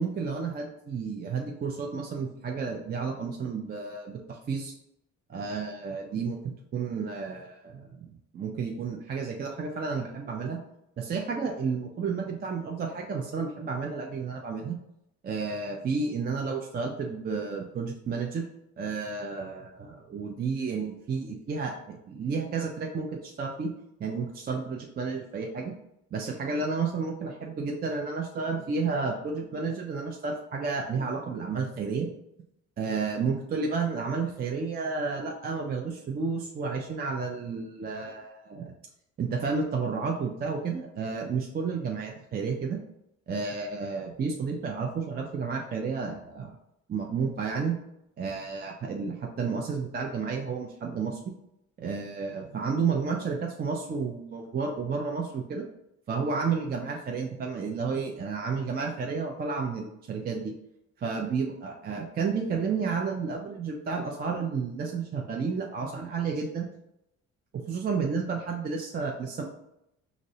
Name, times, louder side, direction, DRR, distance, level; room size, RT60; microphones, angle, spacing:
voice 1, 0.0-4.7 5.3-8.0 8.3-10.6 11.0-14.8 15.2-18.5 18.8-23.7 24.0-25.7 26.1-32.1 32.8-38.7 39.2-42.8 43.3-46.6 46.9-47.8 48.2-51.3 51.8-55.6 56.1-60.5 61.0-66.7 67.5-69.4, right 5 dB, 30° right, 1 dB, 0.4 m, -31 dB
4.9 x 2.0 x 2.6 m, 0.81 s
cardioid pair, 90°, 30 cm